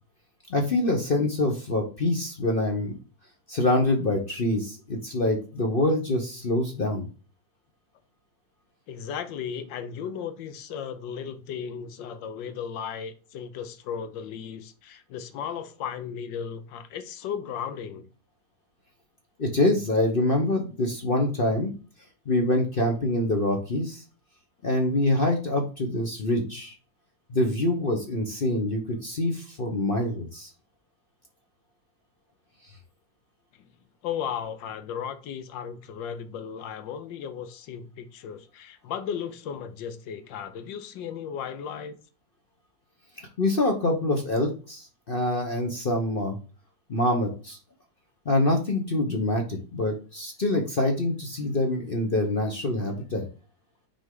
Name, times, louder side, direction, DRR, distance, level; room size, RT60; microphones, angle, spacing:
voice 1, 0.5-2.9 3.5-7.0 19.4-21.7 22.3-24.0 24.6-26.7 27.3-30.5 43.4-46.4 46.9-47.6 48.3-53.3, left 1 dB, 45° left, 0.8 m, -25 dB
voice 2, 8.9-18.1 33.6-33.7 34.0-42.0, left 8 dB, 80° left, 1.4 m, -35 dB
6.0 x 4.4 x 3.7 m
omnidirectional pair, 2.0 m